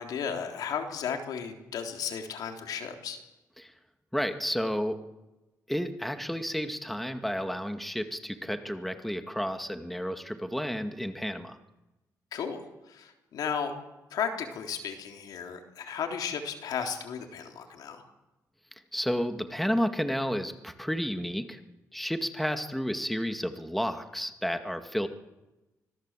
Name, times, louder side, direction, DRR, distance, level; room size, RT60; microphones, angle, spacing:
voice 1, 0.0-3.2 12.3-13.7 14.1-18.0, left 7 dB, 80° left, 4 dB, 3.5 m, -34 dB
voice 2, 4.1-5.0 5.7-11.6 18.9-21.6 21.9-25.1, equal, ahead, 7 dB, 2.0 m, -31 dB
25.5 x 18.0 x 7.6 m, 1.0 s
cardioid pair, 80°, 7 cm